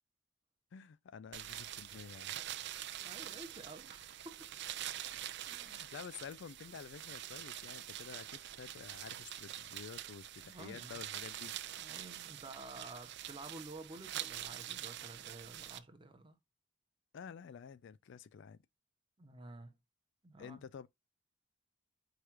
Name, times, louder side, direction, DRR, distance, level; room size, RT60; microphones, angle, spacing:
voice 1, 0.7-2.3 5.1-5.2 5.6-11.6 17.1-18.6 20.4-20.9, left 6 dB, 60° left, 0.4 m, -50 dB
sound 1, 1.3-15.8, right 12 dB, 60° right, 0.5 m, -45 dB
voice 2, 3.0-4.5 5.5-5.8 10.4-11.0 11.8-16.4 19.2-19.7 20.2-20.7, right 2 dB, 25° right, 0.9 m, -51 dB
4.8 x 2.4 x 4.4 m
head